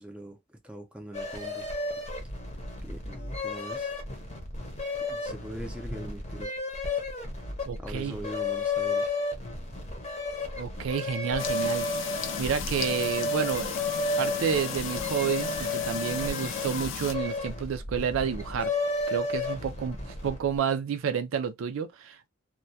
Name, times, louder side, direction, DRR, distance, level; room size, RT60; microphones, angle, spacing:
voice 1, 0.0-1.7 2.8-3.9 5.1-6.5 7.8-9.2, right 1 dB, 5° right, 0.5 m, -42 dB
sound 1, 1.1-20.6, left 2 dB, 35° left, 0.7 m, -33 dB
voice 2, 7.7-8.2 10.6-11.9 12.4-13.7 14.2-18.7 19.1-22.3, right 7 dB, 75° right, 0.4 m, -30 dB
sound 2, 11.4-17.1, left 7 dB, 65° left, 0.4 m, -35 dB
2.2 x 2.1 x 2.6 m
head